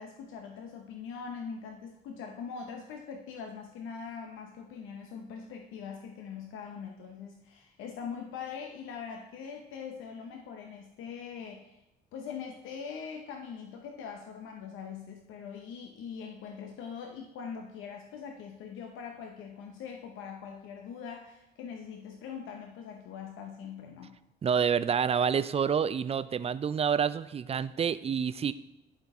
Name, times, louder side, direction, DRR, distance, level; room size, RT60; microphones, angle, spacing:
voice 1, 0.0-11.8 12.1-24.2, left 6 dB, 90° left, 3 dB, 0.7 m, -42 dB
voice 2, 24.4-28.5, right 7 dB, 30° right, 15 dB, 0.4 m, -28 dB
11.5 x 4.4 x 3.6 m, 0.92 s
cardioid pair, 90°, 20 cm